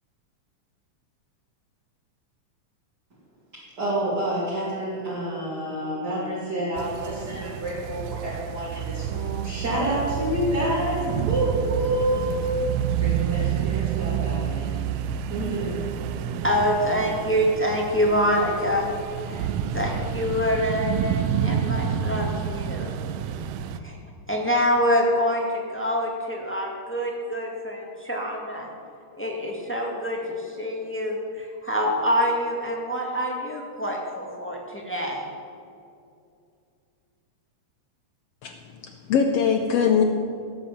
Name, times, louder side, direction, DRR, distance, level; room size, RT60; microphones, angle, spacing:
voice 1, 3.8-12.4 13.0-14.8 15.3-15.9, right 1 dB, 35° right, -7 dB, 3.1 m, -28 dB
sound 1, 6.8-23.8, right 8 dB, 80° right, 1.7 m, -29 dB
voice 2, 16.4-18.9 19.2-22.9 23.8-23.9 24.3-28.7 29.2-35.3, equal, 10° left, 0 dB, 0.8 m, -26 dB
voice 3, 38.4-40.0, left 7 dB, 75° left, 5 dB, 1.5 m, -22 dB
17.0 x 8.0 x 7.0 m, 2.5 s
omnidirectional pair, 3.6 m